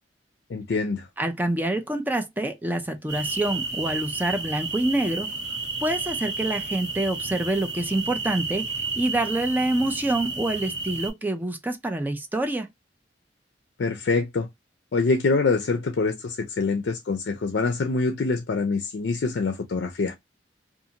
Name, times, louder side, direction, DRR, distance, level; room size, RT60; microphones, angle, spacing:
voice 1, 0.5-1.1 13.8-14.5 14.9-20.1, left 3 dB, 70° left, 0.4 m, -25 dB
voice 2, 1.2-5.3 5.8-12.7, right 1 dB, 10° right, 0.4 m, -26 dB
sound 1, 3.1-11.1, right 3 dB, 75° right, 1.1 m, -32 dB
2.5 x 2.4 x 2.8 m
head